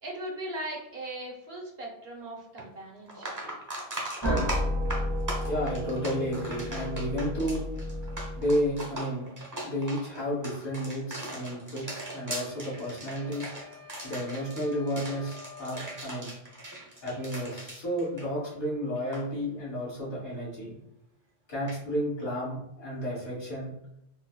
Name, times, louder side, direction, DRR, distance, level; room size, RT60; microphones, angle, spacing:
voice 1, 0.0-3.3, right 1 dB, 70° right, -1 dB, 1.1 m, -39 dB
sound 1, 2.6-2.7 3.1-18.7 19.0-19.2 21.7-21.8, right 1 dB, 20° right, 0.7 m, -39 dB
sound 2, 4.2-8.9, equal, 15° left, 1.1 m, -32 dB
voice 2, 5.4-7.7 8.4-9.3 9.6-13.5 14.0-16.3 17.0-20.8 21.5-23.7, equal, 55° left, -7 dB, 1.8 m, -32 dB
sound 3, 11.8-16.1, left 4 dB, 35° left, 0.6 m, -49 dB
4.5 x 2.2 x 2.2 m, 0.80 s
omnidirectional pair, 1.0 m